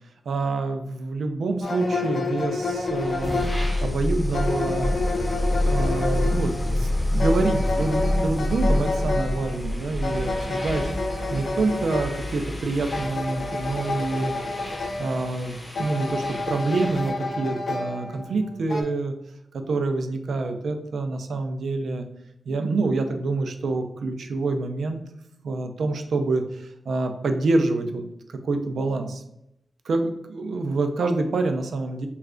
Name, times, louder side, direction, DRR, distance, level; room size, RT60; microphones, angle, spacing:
voice 1, 0.3-3.4 3.8-4.9 5.6-10.9 11.3-14.3 15.0-19.1 19.5-22.1 22.5-25.0 25.4-28.0 28.3-29.2 29.9-32.1, right 3 dB, 80° right, 6 dB, 0.4 m, -26 dB
sound 1, 1.6-18.8, left 3 dB, 60° left, 0.5 m, -30 dB
sound 2, 2.6-17.2, left 1 dB, 20° left, 0.6 m, -28 dB
3.1 x 2.3 x 3.6 m, 0.81 s
wide cardioid pair, 170°, 0 cm